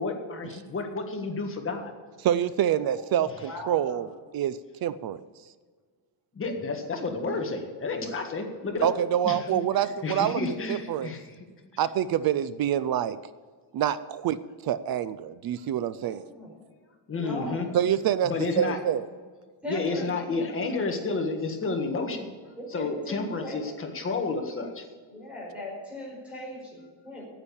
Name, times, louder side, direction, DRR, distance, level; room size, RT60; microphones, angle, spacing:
voice 1, 0.0-1.9 6.3-8.9 9.2-9.6 10.0-11.3 17.1-17.7 18.2-18.8 19.7-22.3 22.7-24.9, left 3 dB, 25° left, 3 dB, 1.6 m, -31 dB
voice 2, 2.2-4.1 4.3-5.2 8.8-10.4 10.7-11.1 11.8-13.2 13.7-14.4 14.6-16.2 17.7-19.1, right 10 dB, 50° right, 16 dB, 0.5 m, -26 dB
voice 3, 2.8-4.1 16.0-16.5 17.1-17.7 19.6-20.8 22.6-23.7 25.1-27.3, left 1 dB, 5° right, -4 dB, 4.9 m, -39 dB
9.8 x 8.9 x 8.6 m, 1.5 s
cardioid pair, 170°, 47 cm